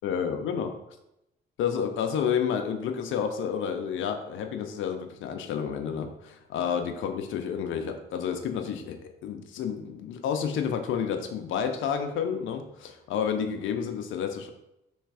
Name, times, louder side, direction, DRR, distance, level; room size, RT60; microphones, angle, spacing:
voice 1, 0.0-0.7 1.6-14.5, left 7 dB, 80° left, 5 dB, 0.5 m, -30 dB
3.3 x 3.2 x 4.8 m, 0.85 s
cardioid pair, 90°, 20 cm